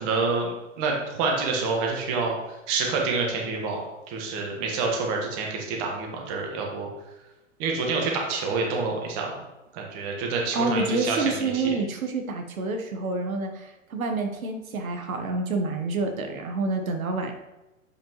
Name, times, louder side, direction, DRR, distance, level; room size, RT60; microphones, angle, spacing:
voice 1, 0.0-2.4 2.7-6.9 7.6-9.4 9.7-11.7, right 4 dB, 30° right, 0 dB, 1.4 m, -27 dB
voice 2, 10.5-17.3, right 3 dB, 90° right, 4 dB, 1.1 m, -28 dB
7.9 x 5.1 x 3.1 m, 1.0 s
hypercardioid pair, 145°, 41 cm